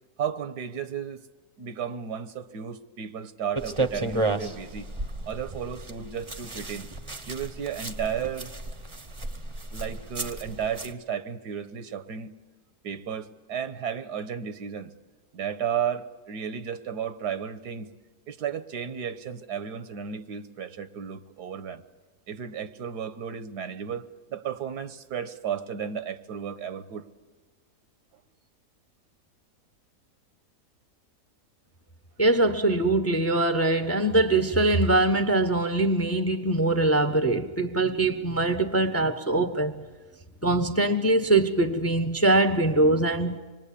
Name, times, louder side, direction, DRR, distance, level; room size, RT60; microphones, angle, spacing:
voice 1, 0.2-1.2 1.6-4.9 5.3-6.9 7.3-8.5 9.7-12.3 12.8-14.9 15.3-17.9 18.3-21.8 22.3-27.1, right 8 dB, 80° right, 1.6 m, -33 dB
sound 1, 3.5-10.9, right 2 dB, 25° right, 0.9 m, -33 dB
voice 2, 32.2-39.7 40.4-43.4, right 2 dB, 10° left, 0.8 m, -23 dB
25.5 x 22.0 x 8.5 m
omnidirectional pair, 1.7 m